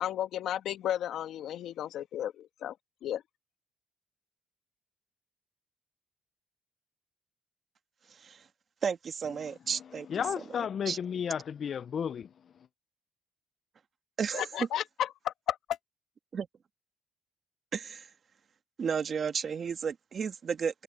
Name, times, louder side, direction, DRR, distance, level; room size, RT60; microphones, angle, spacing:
voice 1, 0.0-2.7 3.0-3.2 14.3-15.6, left 11 dB, 80° left, 1.6 m, -33 dB
voice 2, 8.8-10.1 10.9-11.0 14.2-14.5 16.3-16.5 17.7-18.1 18.8-20.8, right 6 dB, 50° right, 1.5 m, -33 dB
voice 3, 9.4-9.8 10.1-12.3, left 7 dB, 55° left, 0.4 m, -33 dB
cardioid pair, 90°, 0 cm